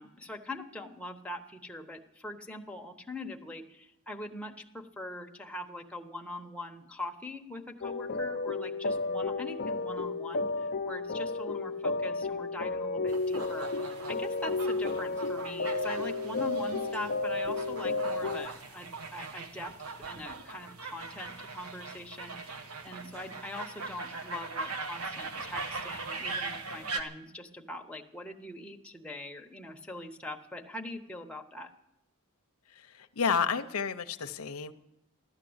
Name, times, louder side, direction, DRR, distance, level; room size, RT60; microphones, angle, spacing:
voice 1, 0.0-31.7, left 2 dB, 5° left, 2 dB, 1.0 m, -42 dB
sound 1, 7.8-18.5, left 3 dB, 45° left, 0.7 m, -32 dB
sound 2, 13.1-27.0, right 3 dB, 80° right, 1.2 m, -40 dB
voice 2, 32.7-34.7, left 6 dB, 85° left, 9 dB, 0.7 m, -31 dB
15.0 x 12.0 x 7.9 m, 0.85 s
head